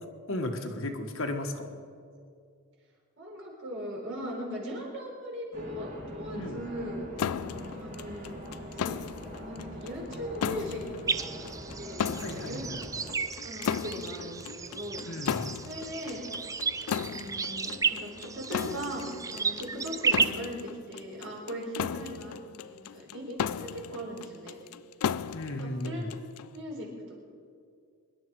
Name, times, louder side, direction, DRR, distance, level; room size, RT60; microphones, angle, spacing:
voice 1, 0.3-1.8 6.3-6.6 12.2-12.6 15.0-15.4 25.3-26.1, left 1 dB, 60° left, 4 dB, 1.4 m, -35 dB
voice 2, 3.2-7.1 7.8-8.3 8.7-9.0 9.4-11.1 11.8-12.6 13.4-15.3 15.6-16.2 17.0-22.4 22.7-24.6 25.2-25.4 25.6-26.1 26.5-26.9, equal, 55° right, -2 dB, 4.2 m, -39 dB
sound 1, 5.5-13.2, equal, 35° right, 2.0 m, -43 dB
sound 2, 7.2-26.6, left 8 dB, 80° left, 0.4 m, -36 dB
sound 3, 11.1-20.2, right 5 dB, 15° right, 0.3 m, -33 dB
24.0 x 11.0 x 4.7 m, 2.2 s
head